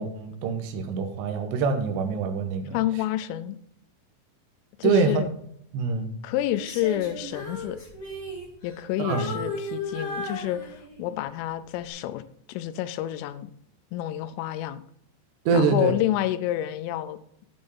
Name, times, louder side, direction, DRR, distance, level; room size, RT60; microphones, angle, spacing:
voice 1, 0.0-2.8 4.8-5.2 5.7-6.1 9.0-9.3 15.5-15.9, right 4 dB, 75° right, 5 dB, 2.9 m, -25 dB
voice 2, 2.7-3.6 4.8-5.3 6.2-7.8 8.6-12.2 12.5-13.5 13.9-14.8 15.5-17.4, left 13 dB, 90° left, 12 dB, 3.2 m, -29 dB
Female singing, 6.5-8.8 9.1-11.1 11.7-11.9, left 2 dB, 45° left, 1.1 m, -35 dB
8.9 x 5.4 x 5.3 m, 0.70 s
omnidirectional pair, 5.6 m